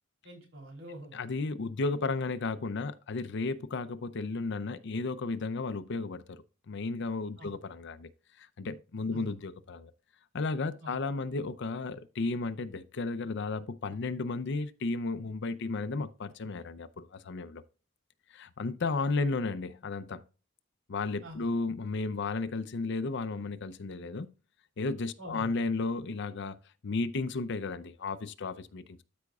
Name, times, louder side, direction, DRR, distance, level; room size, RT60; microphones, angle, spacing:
voice 1, 0.2-1.2 7.4-7.5 9.1-9.3 10.8-11.0 21.2-21.5 25.2-25.6, right 1 dB, 70° right, 3.5 m, -45 dB
voice 2, 1.1-6.4 6.7-8.1 8.4-9.9 10.3-17.6 18.3-20.2 20.9-24.3 24.8-29.0, left 3 dB, 60° left, 0.6 m, -34 dB
13.0 x 5.1 x 2.4 m
head